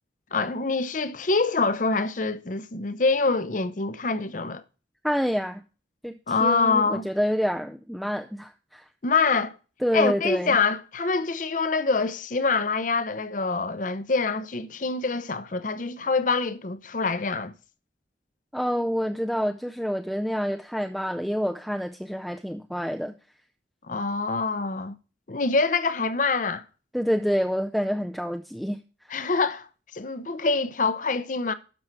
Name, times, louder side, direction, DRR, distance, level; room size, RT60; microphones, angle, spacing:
voice 1, 0.3-4.6 6.3-7.0 9.0-9.5 9.9-17.5 23.9-25.0 25.3-26.6 29.1-31.5, left 4 dB, 45° left, 0.7 m, -25 dB
voice 2, 5.0-5.6 6.0-8.9 9.8-10.6 18.5-23.1 26.9-29.1, equal, ahead, 0.4 m, -27 dB
12.5 x 5.6 x 4.5 m
head